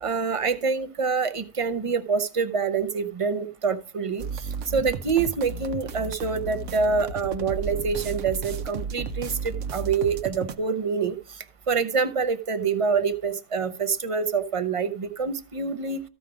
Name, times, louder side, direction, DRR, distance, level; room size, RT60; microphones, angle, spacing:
voice 1, 0.0-16.0, right 5 dB, 35° right, 11 dB, 0.6 m, -26 dB
sound 1, 4.2-10.6, right 4 dB, 85° right, 1.0 m, -33 dB
14.0 x 4.9 x 5.0 m, 0.37 s
omnidirectional pair, 1.2 m